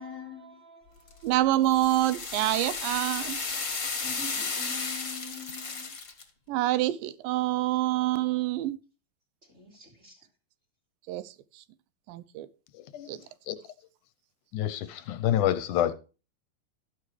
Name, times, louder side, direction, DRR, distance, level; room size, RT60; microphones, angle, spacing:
voice 1, 0.0-1.4 3.9-5.9 9.4-10.3, left 4 dB, 20° right, 3.6 m, -45 dB
sound 1, 1.1-6.2, left 4 dB, 35° left, 1.3 m, -34 dB
voice 2, 1.2-3.4 6.5-8.8 11.1-11.2 12.1-12.5 13.1-13.2, right 15 dB, 80° right, 2.4 m, -26 dB
voice 3, 14.5-15.9, left 11 dB, 75° left, 2.0 m, -27 dB
13.0 x 9.8 x 3.2 m
omnidirectional pair, 4.0 m